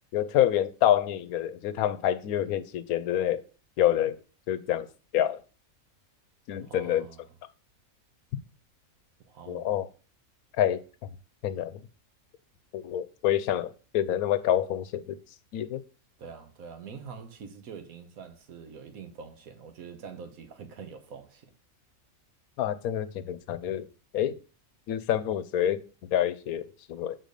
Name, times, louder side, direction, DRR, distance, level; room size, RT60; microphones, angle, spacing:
voice 1, 0.1-3.4 3.8-4.2 4.5-4.9 5.1-5.4 6.5-7.1 9.5-9.9 10.6-10.8 11.4-11.8 12.7-15.2 15.5-15.8 22.6-23.9 24.1-24.3 24.9-25.8 26.1-26.6 26.9-27.2, left 11 dB, 85° left, 1.1 m, -27 dB
voice 2, 6.6-7.3 9.2-9.9 16.2-21.5, right 6 dB, 75° right, 1.4 m, -45 dB
6.5 x 4.0 x 5.2 m
omnidirectional pair, 1.5 m